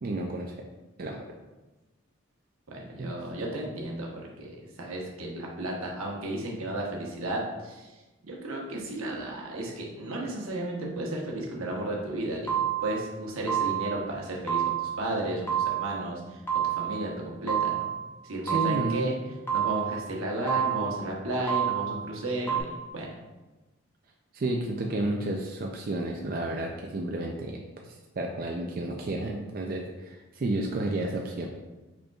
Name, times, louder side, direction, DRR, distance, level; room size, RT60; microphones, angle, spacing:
voice 1, 0.0-0.5 1.0-1.2 3.0-3.1 18.4-19.1 24.3-27.6 28.2-31.5, right 2 dB, 45° right, 0 dB, 0.4 m, -31 dB
voice 2, 2.7-8.0 8.2-15.5 15.8-17.9 18.2-19.1 19.5-23.1, right 1 dB, 85° right, -2 dB, 1.0 m, -33 dB
sound 1, 12.5-13.0 13.5-14.0 14.5-15.0 15.5-16.0 16.5-17.0 17.5-18.0 18.5-19.0 19.5-20.0 20.5-21.0 21.5-22.0 22.5-22.6, right 10 dB, 10° left, 0.7 m, -28 dB
5.1 x 4.4 x 2.3 m, 1.1 s
head